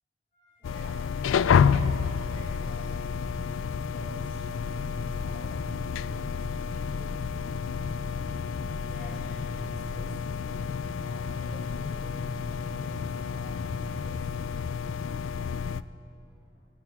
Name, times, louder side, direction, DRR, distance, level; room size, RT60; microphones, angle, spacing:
voice 1, 0.3-3.4 3.9-7.3 8.8-10.6 11.0-14.5 16.2-16.6, equal, 45° left, -11 dB, 4.4 m, -53 dB
sound 1, 0.6-15.8, left 6 dB, 85° left, 0.3 m, -30 dB
sound 2, 3.0-14.2, equal, 15° left, 3.3 m, -44 dB
18.5 x 16.0 x 3.7 m, 2.8 s
head